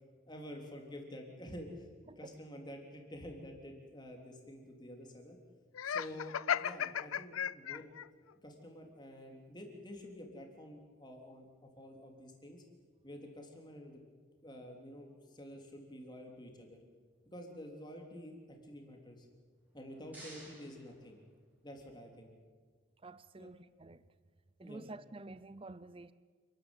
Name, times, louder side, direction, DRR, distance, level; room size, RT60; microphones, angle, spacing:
voice 1, 0.3-1.9 2.2-5.4 5.8-7.9 8.4-12.6 13.0-14.0 14.4-16.8 17.3-19.3 19.7-21.2 21.6-22.3 23.4-23.5 24.6-24.8, equal, 20° left, 3.4 m, -49 dB
Laughter, 5.7-8.1, left 8 dB, 85° left, 0.5 m, -35 dB
sound 1, 19.6-21.8, right 1 dB, 10° right, 6.0 m, -56 dB
voice 2, 23.0-24.0 24.6-26.1, right 2 dB, 25° right, 0.5 m, -50 dB
28.0 x 13.5 x 9.1 m
head